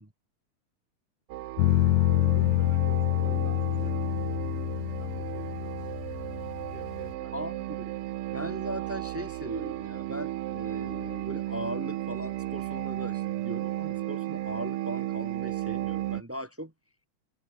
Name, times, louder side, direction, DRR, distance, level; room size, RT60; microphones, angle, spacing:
sound 1, 1.3-16.2, right 15 dB, 80° right, 1.3 m, -34 dB
sound 2, 1.6-7.1, left 16 dB, 75° left, 1.8 m, -27 dB
voice 1, 2.3-4.4 5.0-6.0 6.3-7.7, left 1 dB, 15° left, 7.5 m, -50 dB
voice 2, 7.3-8.0 8.3-16.7, equal, 20° right, 0.4 m, -39 dB
omnidirectional pair, 3.4 m